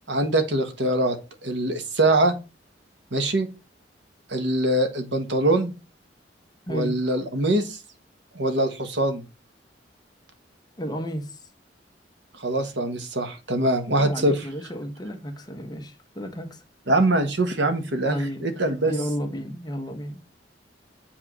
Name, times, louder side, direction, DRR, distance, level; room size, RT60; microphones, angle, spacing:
voice 1, 0.1-1.2 1.4-2.3 3.1-3.5 4.3-5.7 6.7-7.8 8.3-9.2 12.4-14.4 16.9-18.9, right 1 dB, 70° right, 1.3 m, -23 dB
voice 2, 10.8-11.4 14.0-16.6 18.0-18.4 18.8-20.2, equal, 25° left, 1.1 m, -32 dB
7.5 x 3.6 x 6.1 m
head